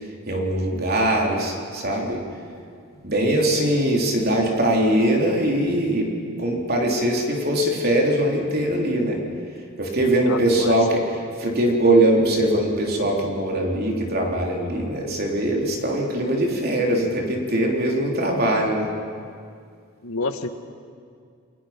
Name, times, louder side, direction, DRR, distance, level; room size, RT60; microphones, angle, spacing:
voice 1, 0.3-2.2 3.0-6.1 6.4-9.2 9.8-11.0 11.4-18.9, right 1 dB, 45° right, 0 dB, 3.5 m, -21 dB
voice 2, 10.3-10.8 20.0-20.5, left 3 dB, 85° left, 8 dB, 1.4 m, -29 dB
29.5 x 21.0 x 5.9 m, 2.2 s
head